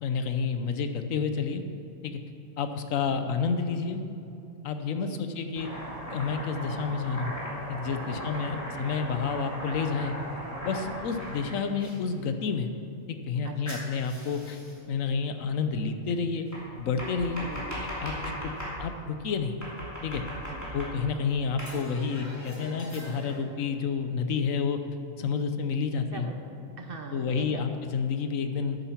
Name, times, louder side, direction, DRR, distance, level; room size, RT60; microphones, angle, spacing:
voice 1, 0.0-1.6 2.0-2.2 2.6-4.0 4.6-5.7 6.1-7.4 7.7-10.1 10.6-12.7 13.1-14.6 14.9-16.5 16.8-17.5 18.0-18.5 18.8-19.6 20.0-20.2 20.7-24.8 25.2-26.3 27.1-28.8, left 5 dB, 75° left, 8 dB, 1.2 m, -30 dB
voice 2, 3.1-3.4 4.9-5.3 8.1-8.6 13.4-13.8 17.4-17.8 18.2-18.7 20.3-20.7 26.1-26.4 26.8-27.8, right 4 dB, 45° right, 4 dB, 1.0 m, -42 dB
Domestic sounds home sounds, 5.5-11.9 13.7-14.8 16.5-18.8 19.6-21.2 21.6-23.4, equal, 10° left, 2.9 m, -38 dB
11.0 x 9.1 x 5.8 m, 2.8 s
omnidirectional pair, 1.4 m